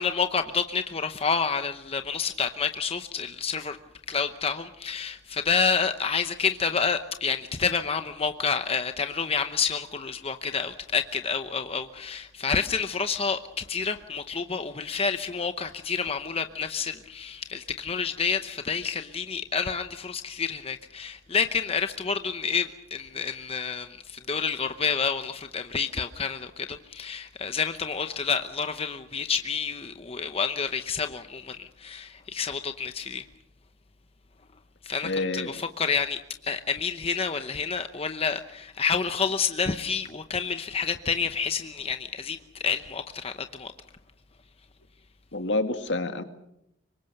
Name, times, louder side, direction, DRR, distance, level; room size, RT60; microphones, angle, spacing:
voice 1, 0.0-3.8 4.1-33.2 34.8-43.7, left 5 dB, 30° left, 0.8 m, -29 dB
voice 2, 35.0-35.5 45.3-46.2, left 2 dB, 65° left, 2.1 m, -28 dB
26.0 x 23.0 x 6.6 m
head